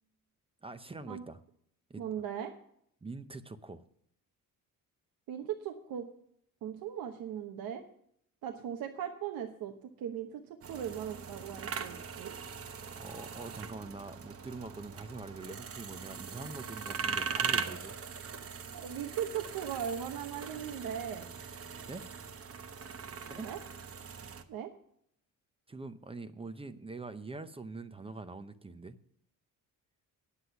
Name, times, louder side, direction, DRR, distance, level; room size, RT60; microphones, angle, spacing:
voice 1, 0.6-1.4 1.9-2.2 3.0-3.8 12.9-18.0 21.9-22.0 23.3-23.5 25.7-29.0, right 3 dB, 15° right, 10 dB, 0.6 m, -44 dB
voice 2, 2.0-2.5 5.3-6.1 6.6-7.8 8.4-9.7 10.0-10.4 10.7-12.3 18.7-21.3 23.4-23.6 24.5-24.7, right 9 dB, 90° right, 4 dB, 1.1 m, -38 dB
sound 1, 10.6-24.4, right 6 dB, 40° right, 1.0 m, -40 dB
9.8 x 8.0 x 6.9 m, 0.68 s
cardioid pair, 140°, 34 cm